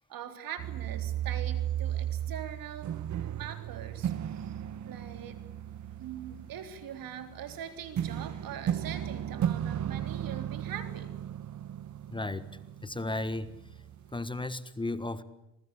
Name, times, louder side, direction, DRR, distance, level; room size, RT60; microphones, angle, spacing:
voice 1, 0.1-4.5 4.8-5.4 6.0-11.2, right 9 dB, 75° right, 8 dB, 3.7 m, -42 dB
sound 1, 0.6-14.2, right 10 dB, 55° right, 1.1 m, -35 dB
voice 2, 12.1-12.5 12.8-13.5 14.1-15.2, left 2 dB, 15° left, 14 dB, 1.4 m, -34 dB
27.0 x 20.5 x 8.5 m, 0.87 s
cardioid pair, 100°, 35 cm